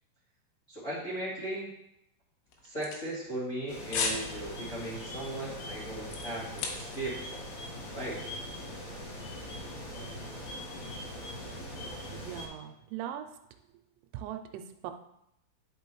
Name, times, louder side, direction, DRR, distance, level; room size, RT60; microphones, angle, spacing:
voice 1, 0.7-1.7 2.6-7.5 7.9-8.3, right 1 dB, 25° left, -8 dB, 1.7 m, -37 dB
sound 1, 2.5-3.6 3.9-4.3 4.6-4.9 5.3-7.1 7.4-7.5, left 5 dB, 80° left, 3.2 m, -35 dB
sound 2, 3.7-12.5, left 1 dB, 60° left, 2.0 m, -41 dB
voice 2, 11.8-13.4 14.1-14.9, right 11 dB, 85° right, 6 dB, 3.0 m, -41 dB
10.5 x 5.6 x 3.0 m, 0.82 s
omnidirectional pair, 5.7 m